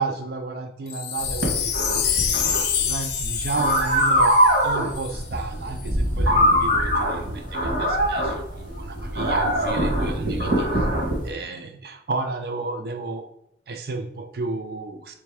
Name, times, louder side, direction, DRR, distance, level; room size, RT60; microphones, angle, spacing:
voice 1, 0.0-1.7 2.0-10.9 11.2-13.3 13.7-15.1, right 3 dB, 55° right, 5 dB, 0.4 m, -32 dB
Wind chime, 0.9-5.2 5.8-5.9, left 8 dB, 65° left, 0.6 m, -27 dB
sound 1, 1.2-11.3, equal, 80° right, 1.6 m, -22 dB
3.4 x 3.3 x 4.8 m, 0.76 s
head